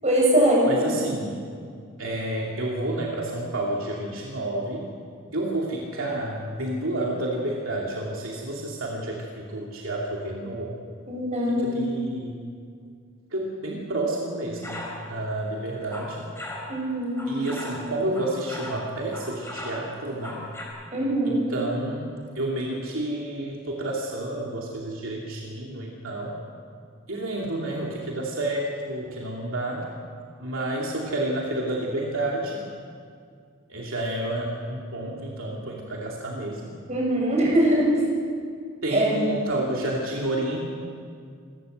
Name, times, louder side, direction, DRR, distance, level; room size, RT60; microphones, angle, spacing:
voice 1, 0.0-1.0 11.1-11.9 16.7-17.3 20.9-21.4 36.9-38.0 38.9-39.2, right 1 dB, 35° right, -3 dB, 7.8 m, -22 dB
voice 2, 0.7-1.4 2.0-4.9 5.3-10.7 11.5-12.4 13.3-16.3 17.3-20.4 21.3-26.4 27.1-29.9 30.4-32.6 33.7-36.7 38.8-40.6, right 1 dB, 75° right, -2 dB, 2.7 m, -30 dB
sound 1, 14.6-15.0 15.7-16.7 17.2-18.8 19.1-20.7, left 1 dB, 10° left, 4.9 m, -37 dB
28.0 x 13.0 x 8.0 m, 2.2 s
head